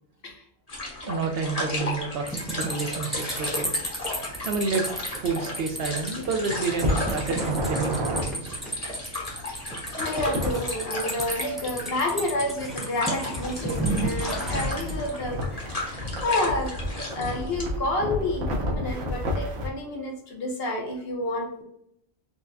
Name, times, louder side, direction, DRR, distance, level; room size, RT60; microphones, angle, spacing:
sound 1, 0.7-17.7, left 2 dB, 35° left, 0.9 m, -35 dB
voice 1, 1.0-3.7 4.4-4.9 5.1-8.6, right 4 dB, 60° right, 4 dB, 0.8 m, -29 dB
sound 2, 2.3-15.0, right 1 dB, ahead, 0.4 m, -33 dB
sound 3, 6.8-8.2 10.0-10.6 13.3-19.7, left 1 dB, 90° right, 1.2 m, -30 dB
voice 2, 10.0-21.6, left 1 dB, 60° left, 1 dB, 1.0 m, -30 dB
4.5 x 2.2 x 2.6 m, 0.72 s
omnidirectional pair, 1.2 m